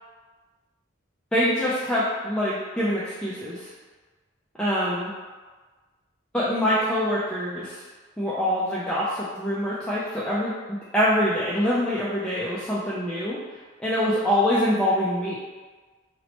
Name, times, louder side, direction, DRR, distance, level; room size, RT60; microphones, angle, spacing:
voice 1, 1.3-3.7 4.6-5.1 6.3-7.8 8.2-13.4 13.8-15.4, equal, 5° left, -8 dB, 0.3 m, -25 dB
2.9 x 2.1 x 4.1 m, 1.4 s
head